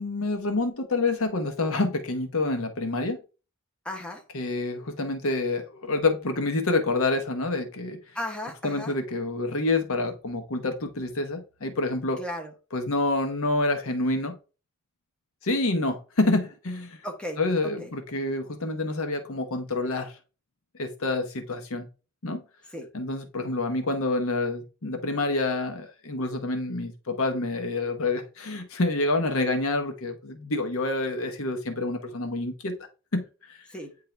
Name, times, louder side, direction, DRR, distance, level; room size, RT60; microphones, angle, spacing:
voice 1, 0.0-3.2 4.3-8.0 8.6-12.2 12.7-14.4 15.4-17.0 17.4-20.1 20.8-21.9 22.2-22.4 22.9-32.7 33.1-33.6, left 2 dB, 65° left, 1.0 m, -27 dB
voice 2, 3.8-4.2 8.1-8.9 12.2-12.5 17.0-17.9 22.7-22.9 33.7-33.9, left 1 dB, 5° left, 1.1 m, -35 dB
8.9 x 3.7 x 3.3 m
head